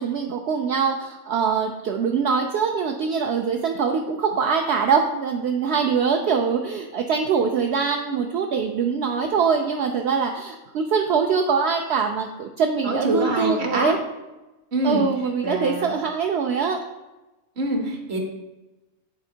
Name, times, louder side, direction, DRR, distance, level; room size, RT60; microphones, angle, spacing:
voice 1, 0.0-14.0 14.8-16.8, right 6 dB, 65° right, 3 dB, 0.6 m, -23 dB
voice 2, 12.8-13.9 14.7-15.1 15.4-15.9 17.6-18.2, right 1 dB, 50° right, 2 dB, 1.3 m, -25 dB
9.6 x 4.3 x 2.8 m, 1.1 s
omnidirectional pair, 1.5 m